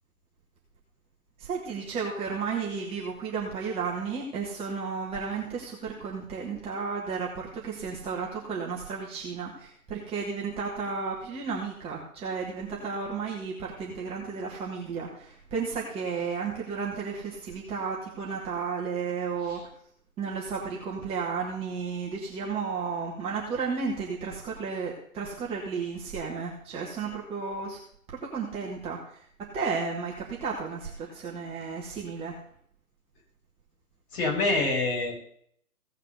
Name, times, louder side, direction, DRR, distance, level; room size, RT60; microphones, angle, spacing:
voice 1, 1.4-19.6 20.2-27.8 28.1-29.0 29.5-32.3, right 5 dB, 15° right, -3 dB, 1.6 m, -33 dB
voice 2, 34.1-35.1, left 2 dB, 45° left, -3 dB, 7.2 m, -26 dB
16.5 x 5.8 x 6.9 m, 0.63 s
hypercardioid pair, 145°, 44 cm